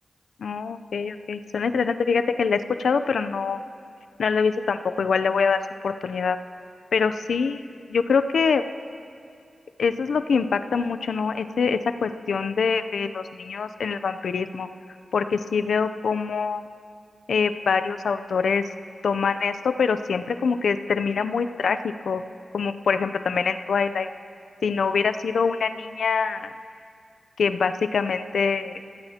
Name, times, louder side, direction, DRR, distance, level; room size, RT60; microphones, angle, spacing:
voice 1, 0.4-3.6 4.2-5.6 5.8-6.4 6.9-7.6 7.9-8.6 9.8-14.7 15.1-16.6 17.3-18.6 19.0-21.8 22.1-22.2 22.5-24.1 24.6-26.5 27.4-28.8, left 5 dB, 80° left, 10 dB, 0.6 m, -24 dB
26.5 x 17.5 x 2.9 m, 2.3 s
cardioid pair, 45°, 0 cm